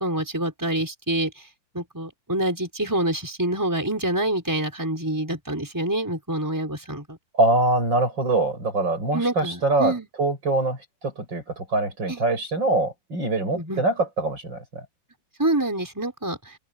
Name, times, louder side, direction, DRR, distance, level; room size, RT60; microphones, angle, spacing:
voice 1, 0.0-1.5 1.7-7.2 9.1-10.1 12.1-12.2 13.5-13.8 15.4-16.6, right 1 dB, 10° right, 5.1 m, -26 dB
voice 2, 7.3-10.8 11.0-14.8, right 2 dB, 70° right, 8.6 m, -24 dB
open air
omnidirectional pair, 2.1 m